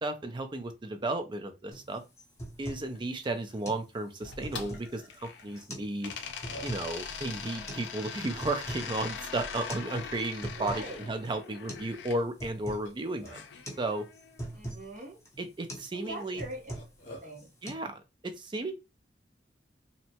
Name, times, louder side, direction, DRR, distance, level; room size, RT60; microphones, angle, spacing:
voice 1, 0.0-2.0 2.6-6.1 6.6-13.4 13.8-14.1 15.4-16.4 17.6-18.7, right 2 dB, 25° right, 0.4 m, -34 dB
sound 1, 1.7-1.9 2.2-2.9 3.2-3.3 3.6-3.8 4.2-5.0 5.6-5.9 6.2-6.9 7.7-7.8 8.2-8.9 9.2-9.3 9.7-9.9 10.2-10.9 11.2-11.3 11.7-11.9 12.2-12.9 13.2-13.4 13.7-13.8 14.1-14.9 15.2-15.4 15.7-15.9 16.2-17.0 17.3-17.7, right 1 dB, 15° left, 0.8 m, -41 dB
Burping eructation, 3.0-3.1 3.4-3.6 4.3-4.4 4.7-5.4 6.1-6.2 6.4-6.9 7.5-8.5 9.1-9.2 9.5-10.1 10.8-11.2 12.7-13.6 14.4-14.5 15.0-15.1 16.0-17.3, equal, 50° left, 0.8 m, -49 dB
sound 2, 4.2-5.6 6.0-12.2 13.3-14.4, left 6 dB, 80° left, 0.4 m, -42 dB
voice 2, 10.6-11.0 14.5-15.2 15.9-16.7 17.2-17.5, right 2 dB, 45° right, 1.0 m, -41 dB
2.7 x 2.1 x 2.8 m
head